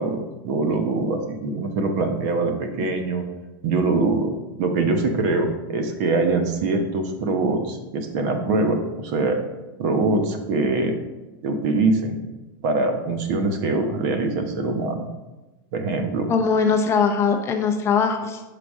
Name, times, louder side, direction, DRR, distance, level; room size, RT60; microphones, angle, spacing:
voice 1, 0.0-3.2 3.6-4.3 4.6-9.4 9.8-11.0 11.4-12.2 12.6-15.1 15.7-16.3, right 3 dB, 55° right, 6 dB, 0.9 m, -23 dB
voice 2, 16.3-18.4, left 5 dB, 25° left, 4 dB, 0.5 m, -21 dB
5.9 x 4.9 x 3.6 m, 1.1 s
supercardioid pair, 140°, 11 cm